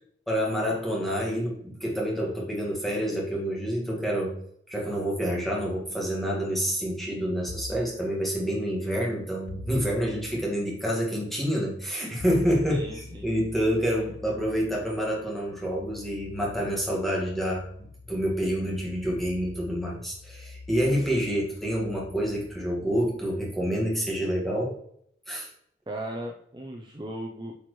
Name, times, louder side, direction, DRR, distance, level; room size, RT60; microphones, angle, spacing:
voice 1, 0.3-4.4 4.7-24.8 25.3-25.5, equal, ahead, -3 dB, 1.7 m, -28 dB
sound 1, 7.5-7.9 9.5-10.4 12.2-23.6, left 3 dB, 85° left, 0.6 m, -45 dB
voice 2, 12.7-13.3 25.9-27.5, right 1 dB, 25° right, 0 dB, 0.6 m, -37 dB
8.6 x 4.5 x 3.1 m, 0.68 s
head